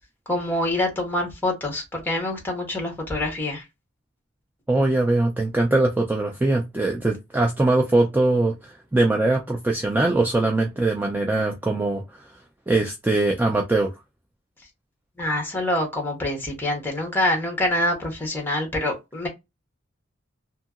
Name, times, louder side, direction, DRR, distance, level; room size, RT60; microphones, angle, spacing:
voice 1, 0.3-3.6 15.2-19.3, left 1 dB, 10° left, 1.0 m, -25 dB
voice 2, 4.7-12.2 12.7-13.9, right 2 dB, 10° right, 0.3 m, -22 dB
2.8 x 2.7 x 2.4 m
head